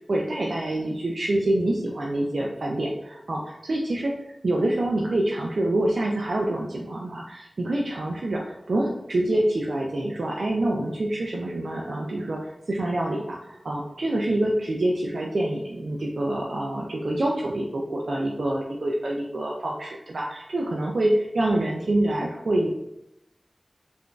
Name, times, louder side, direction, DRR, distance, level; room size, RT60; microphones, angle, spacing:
voice 1, 0.1-4.1 4.4-22.7, right 1 dB, 85° right, -2 dB, 0.3 m, -26 dB
3.7 x 2.5 x 2.2 m, 0.81 s
wide cardioid pair, 65°, 0 cm